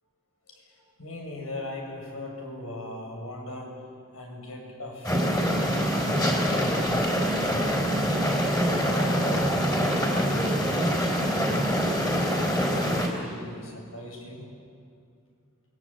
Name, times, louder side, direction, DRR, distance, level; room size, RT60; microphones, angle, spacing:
voice 1, 0.5-3.8 4.1-5.5 6.1-7.8 8.3-11.8 12.3-14.5, left 1 dB, 85° left, 0 dB, 7.4 m, -39 dB
sound 1, 5.0-13.1, equal, 15° left, 3.9 m, -25 dB
28.5 x 23.0 x 9.0 m, 2.3 s
head